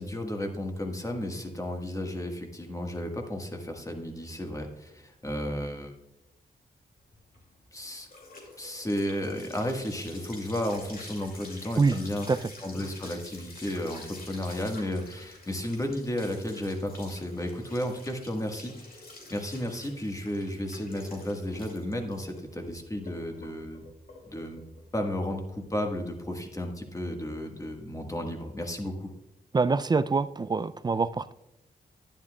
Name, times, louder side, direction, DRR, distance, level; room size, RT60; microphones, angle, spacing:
voice 1, 0.0-5.9 7.7-8.1 8.6-12.3 12.6-19.0 19.3-23.8 24.2-29.1, left 1 dB, 20° left, 3 dB, 1.5 m, -33 dB
sound 1, 7.1-26.2, left 2 dB, 60° left, 2.4 m, -48 dB
voice 2, 29.5-31.3, right 4 dB, 25° right, 15 dB, 0.3 m, -25 dB
11.0 x 9.9 x 2.3 m, 0.90 s
cardioid pair, 60°, 17 cm